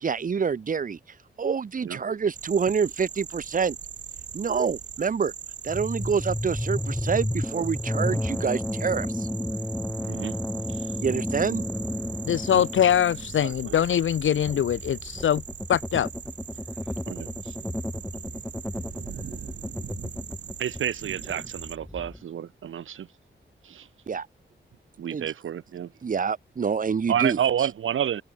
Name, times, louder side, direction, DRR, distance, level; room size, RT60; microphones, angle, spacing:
voice 1, 0.0-1.0 1.4-3.8 4.3-5.3 5.6-9.3 11.0-11.6 24.1-24.3 25.1-25.3 26.0-27.4, right 6 dB, 45° right, 1.1 m, -27 dB
sound 1, 2.3-21.8, right 8 dB, 60° right, 1.2 m, -40 dB
sound 2, 5.7-20.9 21.2-22.2, left 1 dB, 5° left, 2.5 m, -32 dB
voice 2, 12.2-15.4 15.7-16.1, left 10 dB, 85° left, 0.7 m, -23 dB
voice 3, 13.4-13.7 17.1-17.5 20.6-23.1 23.6-23.9 25.0-25.9 27.1-28.2, right 9 dB, 85° right, 0.9 m, -30 dB
open air
wide cardioid pair, 155°, 20 cm